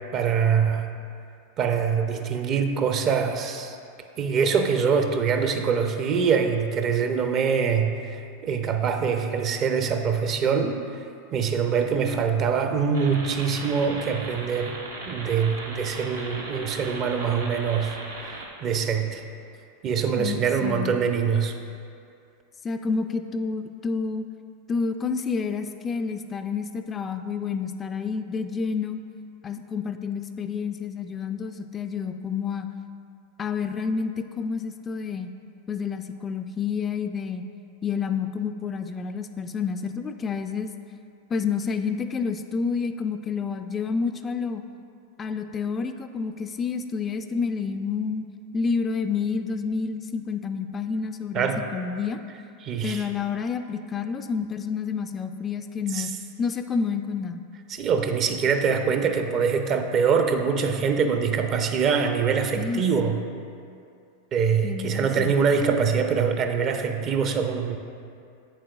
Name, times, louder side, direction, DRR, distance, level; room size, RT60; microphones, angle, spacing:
voice 1, 0.1-0.9 1.6-3.8 4.2-10.8 11.3-14.8 15.0-18.0 18.6-19.2 19.8-21.5 51.3-51.6 52.6-53.1 55.9-56.1 57.7-63.2 64.3-67.8, right 6 dB, 40° right, 6 dB, 0.6 m, -24 dB
sound 1, 12.9-18.5, right 2 dB, 80° right, 1.0 m, -38 dB
voice 2, 20.2-20.9 22.6-24.3 24.7-29.0 29.4-32.7 33.4-35.3 35.7-37.4 37.8-40.7 41.3-44.6 45.2-48.3 48.5-52.2 52.8-56.1 56.4-57.4 62.6-63.1 64.6-65.3, left 5 dB, 25° left, 7 dB, 0.3 m, -29 dB
7.8 x 7.4 x 2.3 m, 2.5 s
hypercardioid pair, 95°, 0 cm